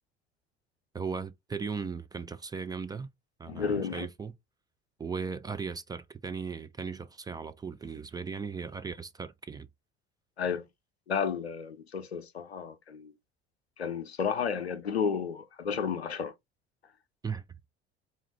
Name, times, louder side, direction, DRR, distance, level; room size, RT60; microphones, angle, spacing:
voice 1, 0.9-3.1 3.4-4.3 5.0-9.7 17.2-17.7, right 5 dB, 15° right, 0.3 m, -37 dB
voice 2, 3.5-4.1 10.4-10.7 11.1-13.1 13.8-16.3, left 6 dB, 85° left, 0.5 m, -32 dB
4.3 x 2.4 x 2.9 m
figure-of-eight pair, 60°, 31 cm